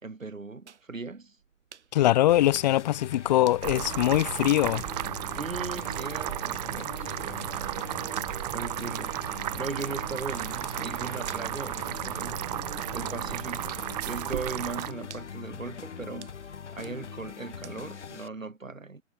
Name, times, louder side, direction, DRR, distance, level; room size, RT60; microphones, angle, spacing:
voice 1, 0.0-1.4 5.4-7.7 8.5-9.2 9.5-12.5 12.9-13.8 14.1-19.0, right 3 dB, 85° right, 4.2 m, -38 dB
sound 1, 0.7-18.1, right 7 dB, 60° right, 6.6 m, -53 dB
voice 2, 1.9-4.8, left 14 dB, 35° left, 1.3 m, -22 dB
sound 2, 2.3-18.3, left 7 dB, 60° left, 4.9 m, -42 dB
sound 3, 3.6-14.9, right 16 dB, 30° right, 1.3 m, -34 dB
figure-of-eight pair, 135°, 39 cm